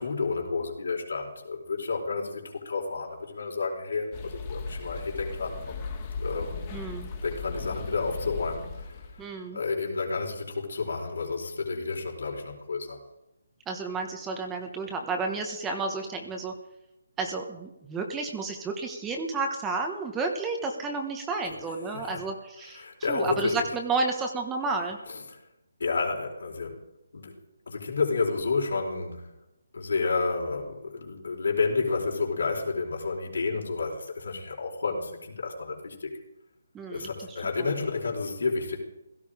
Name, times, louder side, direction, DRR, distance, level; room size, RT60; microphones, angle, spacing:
voice 1, 0.0-5.8 6.2-6.7 7.2-9.1 9.5-13.0 21.4-21.5 21.9-22.2 22.7-23.5 25.1-25.2 25.8-26.8 27.1-27.3 27.7-29.3 29.7-36.1 36.9-38.8, left 4 dB, 70° left, -1 dB, 4.3 m, -30 dB
sound 1, 4.1-9.2, left 4 dB, 20° left, 2.1 m, -37 dB
voice 2, 6.7-7.1 9.2-9.6 13.7-16.5 17.2-25.0 36.7-37.1 37.6-37.7, right 3 dB, 10° right, 3 dB, 1.2 m, -31 dB
16.5 x 14.5 x 5.0 m, 0.91 s
hypercardioid pair, 170°, 0 cm